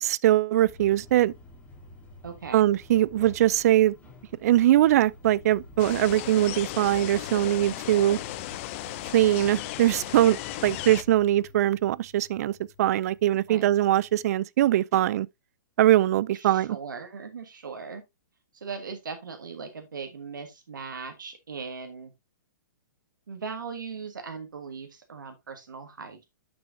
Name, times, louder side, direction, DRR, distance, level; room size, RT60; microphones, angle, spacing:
voice 1, 0.0-1.3 2.5-3.9 4.4-8.2 9.1-12.5 12.8-15.3 15.8-16.8, right 13 dB, 55° right, 0.4 m, -22 dB
sound 1, 0.6-14.3, left 2 dB, 15° left, 2.5 m, -50 dB
voice 2, 2.2-2.6 13.5-13.7 16.3-18.0 18.5-22.1 23.3-26.2, right 5 dB, 90° right, 1.5 m, -39 dB
sound 2, 5.8-11.0, left 16 dB, 40° left, 0.6 m, -36 dB
9.6 x 6.1 x 2.6 m
hypercardioid pair, 135°, 10 cm